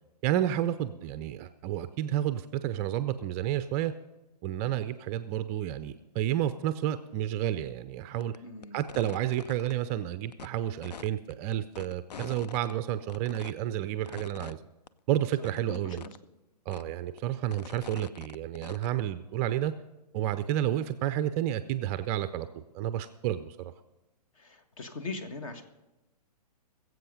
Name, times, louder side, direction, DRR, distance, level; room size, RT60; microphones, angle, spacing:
voice 1, 0.2-3.9 4.4-8.3 8.7-14.6 15.1-16.0 16.7-19.7 20.1-23.7, right 12 dB, 20° right, 12 dB, 0.4 m, -31 dB
sound 1, 8.2-8.4 8.6-9.7 10.3-10.5 10.8-12.7 13.1-13.5 14.1-14.5 14.9-15.0 15.2-15.3 15.4-16.2 16.7-16.8 17.2-18.9, left 6 dB, 75° left, 0.5 m, -44 dB
voice 2, 8.4-8.8 15.7-16.1 24.3-25.6, left 3 dB, 50° left, 8 dB, 1.7 m, -40 dB
21.0 x 7.8 x 5.3 m, 0.98 s
figure-of-eight pair, 120°, 21 cm